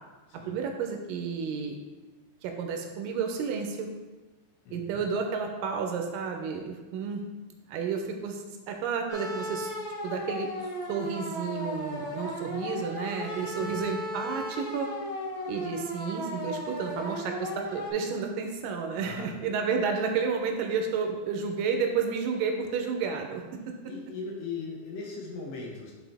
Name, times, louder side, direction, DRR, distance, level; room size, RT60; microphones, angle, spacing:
voice 1, 0.5-1.8 2.4-3.9 4.7-7.2 7.7-9.7 10.0-10.5 10.9-14.9 15.5-23.8, right 5 dB, 80° right, 3 dB, 2.2 m, -31 dB
voice 2, 4.7-5.0 13.6-13.7 19.0-19.4 23.8-25.9, left 4 dB, 75° left, -2 dB, 3.0 m, -39 dB
sound 1, 9.1-17.9, equal, 55° left, 0.7 m, -36 dB
10.0 x 4.4 x 3.4 m, 1.2 s
omnidirectional pair, 4.1 m